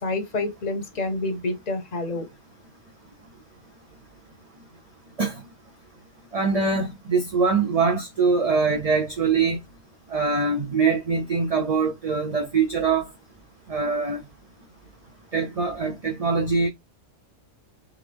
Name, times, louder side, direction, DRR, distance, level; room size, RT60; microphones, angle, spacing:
voice 1, 0.0-2.3, left 2 dB, 35° left, 1.0 m, -28 dB
voice 2, 6.3-9.6 10.1-13.1 13.7-14.2 15.3-16.7, right 4 dB, 35° right, 0.7 m, -23 dB
3.6 x 3.2 x 3.4 m
omnidirectional pair, 1.3 m